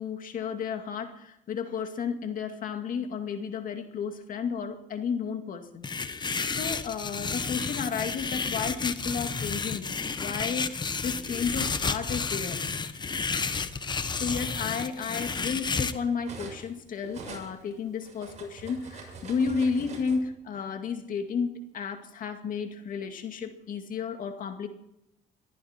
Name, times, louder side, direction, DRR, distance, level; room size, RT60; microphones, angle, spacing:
voice 1, 0.0-9.9 10.2-12.6 13.8-24.7, left 6 dB, 55° left, 6 dB, 2.2 m, -32 dB
sound 1, 5.8-15.9, left 5 dB, 25° left, 1.1 m, -31 dB
Cutlery silverware, 10.6-11.9 12.9-13.1 13.5-16.7 17.0-20.2, right 4 dB, 45° right, 7.0 m, -46 dB
22.0 x 14.0 x 4.4 m, 0.84 s
cardioid pair, 110°, 17 cm